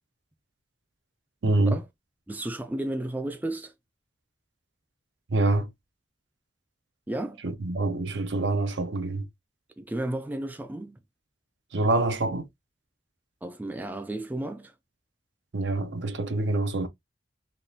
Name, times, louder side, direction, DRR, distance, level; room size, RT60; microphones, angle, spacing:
voice 1, 1.4-1.8 5.3-5.7 7.4-9.3 11.7-12.5 15.5-16.9, right 2 dB, 70° right, 0.6 m, -26 dB
voice 2, 2.3-3.7 7.1-7.4 9.8-11.0 13.4-14.7, right 1 dB, 10° right, 0.3 m, -33 dB
3.6 x 2.3 x 2.6 m
head